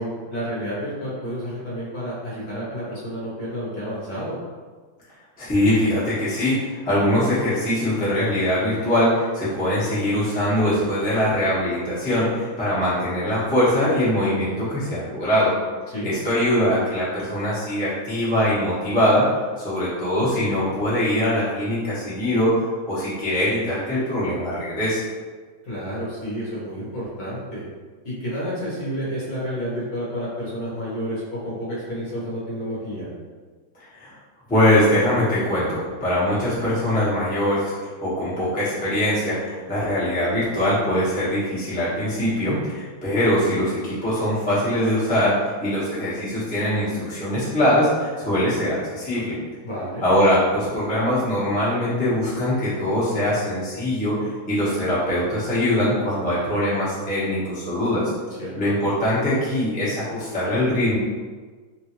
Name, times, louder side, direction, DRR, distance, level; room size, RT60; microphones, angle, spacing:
voice 1, 0.0-4.4 15.9-16.1 25.6-27.6 28.0-33.1 49.6-50.0 58.4-58.7, equal, 50° left, -8 dB, 1.2 m, -30 dB
voice 2, 5.4-15.5 16.0-19.2 19.6-22.6 22.9-25.1 33.9-34.1 34.5-45.3 45.6-49.4 50.0-58.1 58.6-60.9, left 1 dB, 15° left, -10 dB, 0.3 m, -22 dB
3.7 x 2.5 x 3.0 m, 1.4 s
omnidirectional pair, 2.3 m